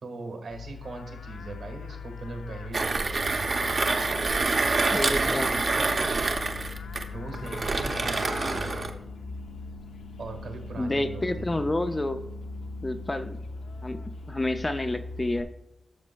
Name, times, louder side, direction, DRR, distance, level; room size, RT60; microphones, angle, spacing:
voice 1, 0.0-3.5 5.0-6.2 7.1-8.8 10.2-11.5, right 3 dB, 65° right, 4 dB, 1.6 m, -40 dB
Livestock farm animals working animals, 0.5-15.4, left 4 dB, 85° left, 0.7 m, -40 dB
Mechanisms, 2.7-9.0, right 3 dB, 40° right, 0.7 m, -27 dB
sound 1, 3.3-13.3, left 5 dB, 65° left, 1.0 m, -49 dB
voice 2, 4.9-5.5 10.8-12.2 12.8-13.4 13.8-14.0 14.3-15.5, left 2 dB, 20° left, 8 dB, 0.4 m, -29 dB
12.5 x 6.5 x 2.2 m, 0.82 s
wide cardioid pair, 140°, 0 cm